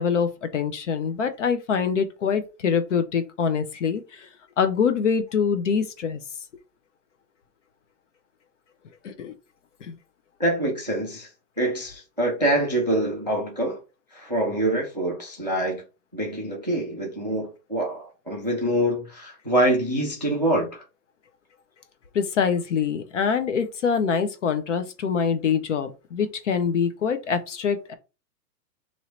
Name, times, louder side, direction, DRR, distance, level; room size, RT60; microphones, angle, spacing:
voice 1, 0.0-4.3 4.6-6.2 9.0-9.3 9.8-10.0 22.1-27.9, left 6 dB, 50° left, 0.5 m, -24 dB
voice 2, 10.4-11.3 11.6-13.8 14.1-15.8 16.1-20.8, right 1 dB, 30° right, 0.3 m, -25 dB
3.0 x 2.7 x 4.2 m
hypercardioid pair, 170°, 50 cm